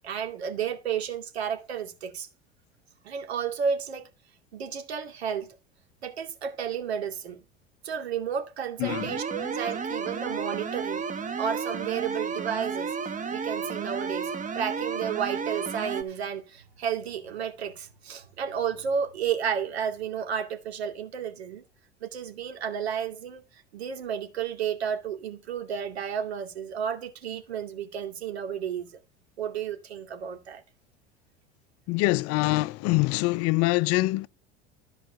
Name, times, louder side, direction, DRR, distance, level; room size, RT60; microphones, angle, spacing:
voice 1, 0.0-2.3 3.0-4.1 4.5-5.5 6.0-7.4 7.8-11.0 11.4-12.9 13.3-21.6 22.0-23.4 23.7-29.0 29.4-30.6, right 7 dB, 80° right, 2.4 m, -32 dB
voice 2, 8.8-9.1 31.9-34.3, left 21 dB, 50° left, 0.5 m, -24 dB
sound 1, 8.9-16.0, right 5 dB, 25° right, 1.4 m, -32 dB
14.0 x 4.8 x 6.6 m
hypercardioid pair, 80°, 31 cm